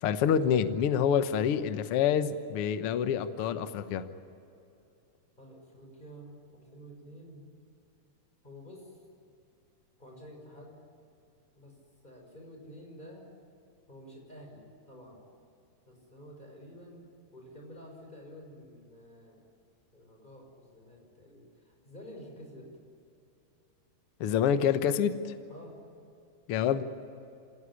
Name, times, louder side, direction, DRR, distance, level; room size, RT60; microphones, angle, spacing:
voice 1, 0.0-4.0 24.2-25.3 26.5-26.8, left 8 dB, 90° left, 10 dB, 1.2 m, -27 dB
voice 2, 5.4-7.5 8.4-9.0 10.0-10.8 11.5-11.8 12.0-13.3 13.9-15.2 15.8-17.0 17.3-19.4 19.9-22.7 25.5-25.8, equal, 10° left, 1 dB, 5.8 m, -50 dB
26.0 x 18.0 x 10.0 m, 2.7 s
omnidirectional pair, 4.2 m